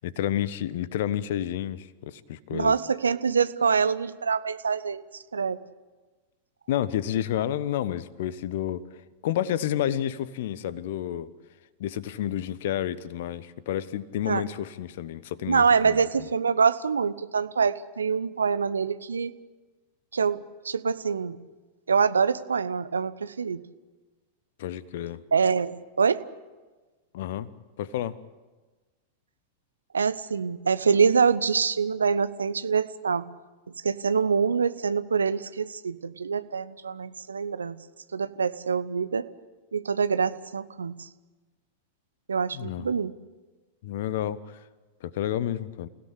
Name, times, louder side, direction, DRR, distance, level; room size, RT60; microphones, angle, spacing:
voice 1, 0.0-2.8 6.7-8.8 9.2-11.3 11.8-16.3 24.6-25.2 27.1-27.5 27.8-28.2 42.5-42.9 43.8-44.6 45.0-45.9, left 11 dB, 55° left, 18 dB, 1.1 m, -30 dB
voice 2, 2.5-5.0 5.3-5.6 14.3-14.4 15.5-19.3 20.1-20.4 20.6-21.4 21.9-23.6 25.3-26.2 29.9-33.2 33.8-37.8 38.1-39.3 39.7-41.1 42.3-43.1, right 5 dB, 75° right, 13 dB, 0.9 m, -25 dB
29.0 x 17.0 x 8.5 m, 1.3 s
figure-of-eight pair, 90°, 0 cm